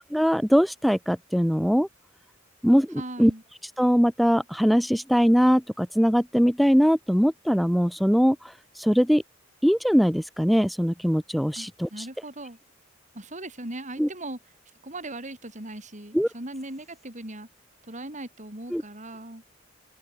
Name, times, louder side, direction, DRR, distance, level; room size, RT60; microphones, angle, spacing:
voice 1, 0.1-1.9 2.6-3.3 3.6-9.2 9.6-12.1 14.0-14.1 16.1-16.3 18.7-18.8, equal, ahead, 0.7 m, -21 dB
voice 2, 3.0-3.4 11.6-12.6 13.1-14.4 14.8-17.5 17.9-19.4, right 1 dB, 40° right, 7.6 m, -39 dB
open air
head